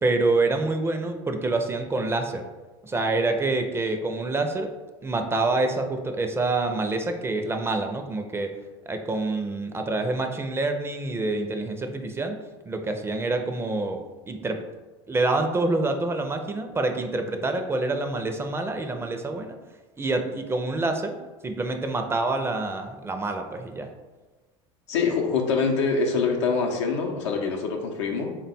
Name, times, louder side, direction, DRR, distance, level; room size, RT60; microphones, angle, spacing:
voice 1, 0.0-2.5 2.8-4.7 5.0-8.5 8.8-12.4 12.7-14.6 15.1-19.6 20.0-21.2 21.4-23.9, right 2 dB, 15° right, 6 dB, 0.4 m, -27 dB
voice 2, 24.9-28.4, left 4 dB, 90° left, 2 dB, 0.6 m, -25 dB
3.6 x 2.2 x 4.1 m, 1.2 s
hypercardioid pair, 90°, 15 cm